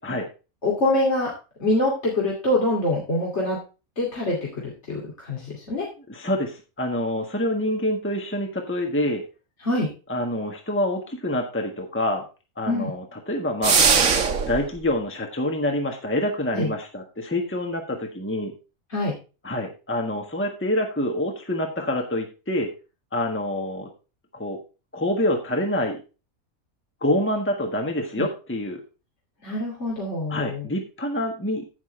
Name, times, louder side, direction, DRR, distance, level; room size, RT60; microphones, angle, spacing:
voice 1, 0.6-1.3 1.6-3.6 4.0-5.9 9.6-9.9 12.7-12.9 16.5-16.7 18.9-19.1 28.2-28.3 29.4-30.7, left 1 dB, 50° left, -3 dB, 2.9 m, -25 dB
voice 2, 6.1-9.2 10.1-12.2 12.6-13.9 14.5-18.5 19.4-22.7 23.1-23.9 24.3-24.6 24.9-26.0 27.0-28.8 30.3-31.6, left 1 dB, 10° left, 3 dB, 1.3 m, -26 dB
sound 1, 13.6-14.6, right 5 dB, 65° right, 1.6 m, -19 dB
14.5 x 5.9 x 3.2 m, 0.31 s
omnidirectional pair, 1.5 m